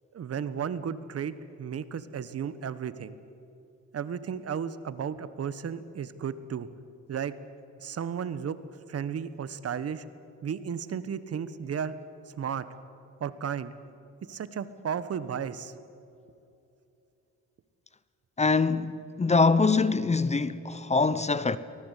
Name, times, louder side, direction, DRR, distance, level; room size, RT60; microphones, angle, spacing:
voice 1, 0.1-3.2 3.9-6.7 7.1-7.3 7.8-8.6 8.9-10.0 10.4-12.0 12.3-12.7 13.2-13.7 14.2-15.7, right 7 dB, 50° right, 1.3 m, -34 dB
voice 2, 18.4-21.6, left 4 dB, 20° left, 0.9 m, -24 dB
24.0 x 19.0 x 8.4 m
cardioid pair, 90°, 30 cm